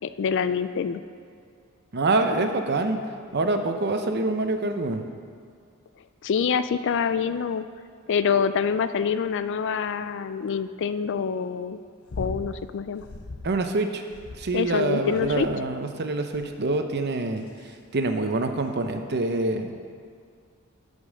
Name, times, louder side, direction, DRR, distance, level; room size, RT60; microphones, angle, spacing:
voice 1, 0.0-1.0 6.2-7.7 8.1-11.8 12.2-13.0 14.5-15.5, left 6 dB, 55° left, 12 dB, 0.4 m, -26 dB
voice 2, 1.9-3.0 3.3-5.0 13.4-14.0 14.4-17.4 17.9-19.8, right 2 dB, 50° right, 6 dB, 0.7 m, -25 dB
sound 1, 12.1-12.5 13.0-13.6 14.1-14.7 15.2-15.7 16.3-16.7 17.4-17.7 18.7-18.8, left 3 dB, 85° left, 0.8 m, -38 dB
11.0 x 5.4 x 6.6 m, 2.2 s
head